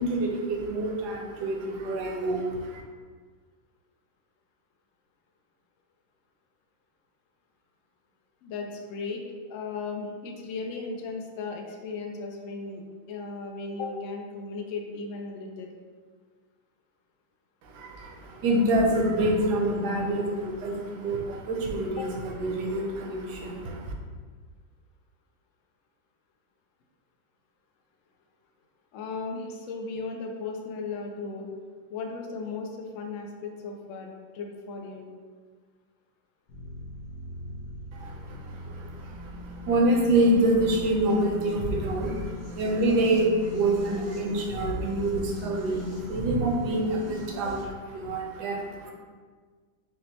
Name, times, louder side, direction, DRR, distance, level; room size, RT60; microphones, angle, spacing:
voice 1, 0.0-2.8 17.6-23.9 37.9-47.6 47.9-48.9, right 1 dB, 70° right, 0 dB, 1.1 m, -26 dB
voice 2, 8.4-15.7 21.9-22.1 28.9-31.5 31.9-35.1 47.3-47.5, left 4 dB, 85° left, 2 dB, 0.7 m, -36 dB
sound 1, 36.5-47.6, left 1 dB, 65° left, 1.1 m, -41 dB
5.9 x 2.1 x 2.8 m, 1.5 s
omnidirectional pair, 1.9 m